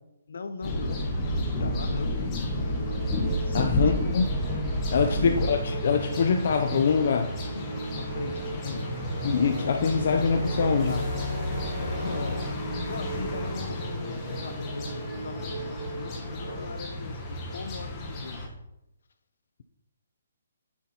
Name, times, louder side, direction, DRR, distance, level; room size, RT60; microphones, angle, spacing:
voice 1, 0.3-2.3 3.4-4.2 5.1-5.5 7.5-8.9 9.8-10.4 10.8-11.3 11.8-18.4, left 4 dB, 65° left, 10 dB, 1.0 m, -39 dB
sound 1, 0.6-18.5, left 1 dB, 15° left, 1.6 m, -31 dB
sound 2, 2.5-16.7, right 4 dB, 35° right, 2.2 m, -40 dB
voice 2, 3.5-4.3 4.9-5.6 5.8-7.4 9.2-11.0, left 6 dB, 45° left, 4 dB, 0.7 m, -24 dB
Brass instrument, 8.3-12.6, right 4 dB, 60° right, 0.8 m, -40 dB
9.5 x 7.2 x 4.5 m, 0.85 s
hypercardioid pair, 170°, 0 cm